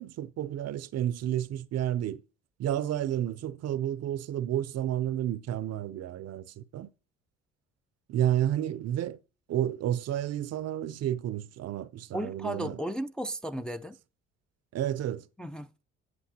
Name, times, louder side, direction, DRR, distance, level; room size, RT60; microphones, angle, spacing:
voice 1, 0.0-2.2 2.6-6.9 8.1-9.2 9.5-12.8 14.7-15.2, right 11 dB, 55° right, 0.6 m, -31 dB
voice 2, 12.1-14.0 15.4-15.8, equal, 5° left, 0.4 m, -35 dB
7.9 x 7.9 x 2.8 m
supercardioid pair, 70°, 30 cm